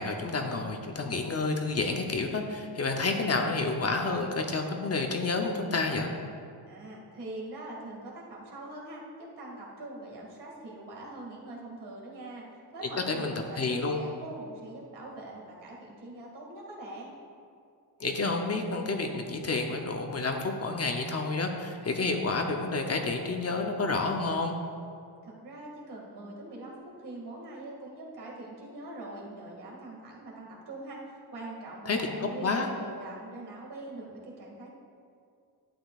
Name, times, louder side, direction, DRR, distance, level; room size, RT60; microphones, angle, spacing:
voice 1, 0.0-6.1 12.8-14.0 18.0-24.6 31.9-32.7, left 3 dB, 35° left, 3 dB, 0.7 m, -30 dB
voice 2, 6.7-12.5 12.7-17.2 25.2-31.0 31.3-34.7, right 2 dB, 65° right, -3 dB, 2.2 m, -43 dB
11.5 x 8.8 x 2.4 m, 2.3 s
cardioid pair, 125°, 42 cm